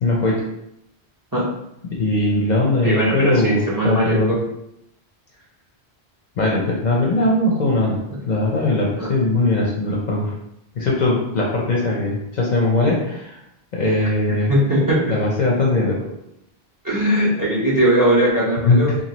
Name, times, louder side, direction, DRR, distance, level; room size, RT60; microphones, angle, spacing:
voice 1, 0.0-0.4 1.9-4.3 6.4-10.3 10.8-13.4 13.7-14.5 15.1-16.1 18.7-18.9, left 2 dB, 50° left, -3 dB, 0.6 m, -20 dB
voice 2, 2.8-4.5 9.0-9.1 14.3-15.1 16.8-19.0, right 1 dB, 25° right, -5 dB, 0.6 m, -19 dB
2.9 x 2.5 x 2.8 m, 0.80 s
omnidirectional pair, 1.1 m